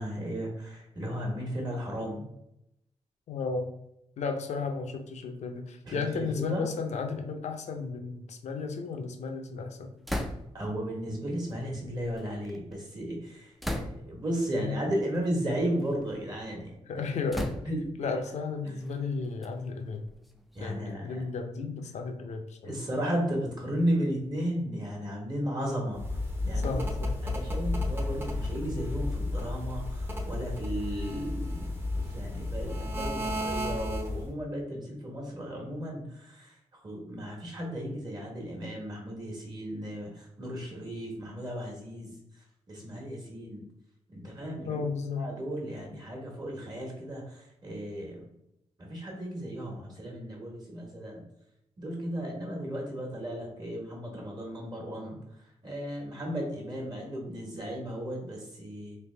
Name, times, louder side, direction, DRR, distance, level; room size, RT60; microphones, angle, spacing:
voice 1, 0.0-2.3 5.9-6.6 10.5-16.7 17.6-18.1 18.6-18.7 20.5-21.2 22.6-26.0 26.4-26.8 27.2-36.5 36.8-42.1 42.7-43.6 44.1-44.8 45.2-48.3 48.8-51.2 51.8-55.2 55.6-59.0, equal, 35° right, -1 dB, 1.3 m, -35 dB
voice 2, 3.3-3.7 4.2-9.9 14.6-14.8 16.9-17.5 18.0-20.0 20.6-22.8 26.5-27.2 44.7-45.3, left 4 dB, 70° left, 5 dB, 0.5 m, -34 dB
sound 1, 10.0-10.7 11.6-12.7 13.6-14.3 15.1-15.3 15.8-16.5 17.3-18.0 18.8-20.7, left 1 dB, ahead, 0.3 m, -37 dB
sound 2, 25.9-34.3, left 2 dB, 20° right, 0.7 m, -32 dB
3.3 x 2.8 x 3.3 m, 0.80 s
wide cardioid pair, 115°, 12 cm